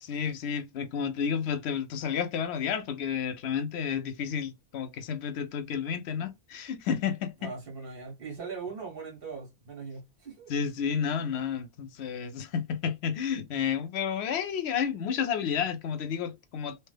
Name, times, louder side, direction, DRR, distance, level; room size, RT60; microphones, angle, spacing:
voice 1, 0.0-7.5 10.5-16.8, left 7 dB, 85° left, 0.9 m, -31 dB
voice 2, 7.4-10.5 11.2-11.3, right 5 dB, 60° right, 1.4 m, -40 dB
2.9 x 2.2 x 3.2 m
omnidirectional pair, 1.1 m